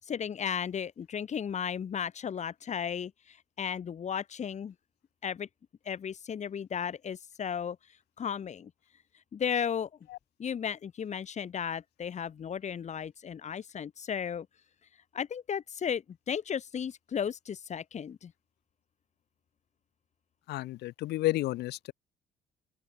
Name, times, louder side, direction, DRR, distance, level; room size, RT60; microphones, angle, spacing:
voice 1, 0.0-4.7 5.2-5.5 5.8-7.8 8.2-8.7 9.3-9.9 10.4-14.5 15.1-18.3, left 7 dB, 45° left, 7.8 m, -35 dB
voice 2, 20.5-21.9, left 17 dB, 80° left, 2.0 m, -31 dB
open air
cardioid pair, 110°, 17 cm